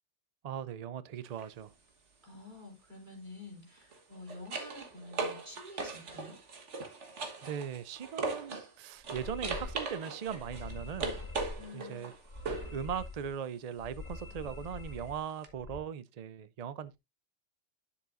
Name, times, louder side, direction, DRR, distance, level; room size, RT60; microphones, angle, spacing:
voice 1, 0.4-1.7 7.4-11.2 11.7-12.1 12.7-17.0, right 8 dB, 55° right, 0.4 m, -39 dB
sound 1, 1.2-1.5 3.8-8.7 9.0-12.8 15.4-15.5, right 4 dB, 80° right, 1.7 m, -39 dB
voice 2, 2.2-6.4 11.6-12.1, left 2 dB, 40° right, 4.1 m, -49 dB
sound 2, 9.0-9.9 10.3-11.6 12.2-13.3 13.8-15.2 15.5-15.8, left 3 dB, 25° left, 1.8 m, -44 dB
10.5 x 6.8 x 2.5 m
omnidirectional pair, 1.2 m